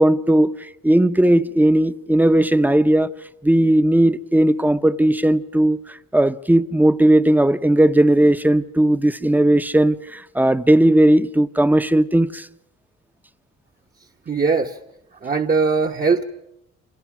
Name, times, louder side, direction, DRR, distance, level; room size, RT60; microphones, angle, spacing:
voice 1, 0.0-3.1 3.4-12.5, right 1 dB, 5° right, 0.9 m, -17 dB
voice 2, 14.3-14.8 15.2-16.2, right 4 dB, 30° right, 1.2 m, -20 dB
29.0 x 26.0 x 6.1 m
cardioid pair, 90°, 30 cm